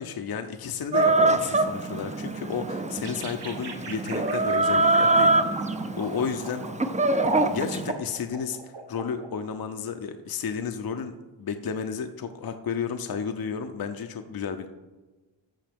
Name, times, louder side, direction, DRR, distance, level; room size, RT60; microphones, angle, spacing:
voice 1, 0.0-5.5 6.0-6.7 7.2-14.7, left 6 dB, 50° left, 7 dB, 0.6 m, -32 dB
Chicken rooster, 0.9-7.9, right 2 dB, 15° right, 0.4 m, -24 dB
sound 1, 3.0-9.3, right 4 dB, 55° right, 1.1 m, -42 dB
13.5 x 5.5 x 3.5 m, 1.2 s
wide cardioid pair, 110°, 47 cm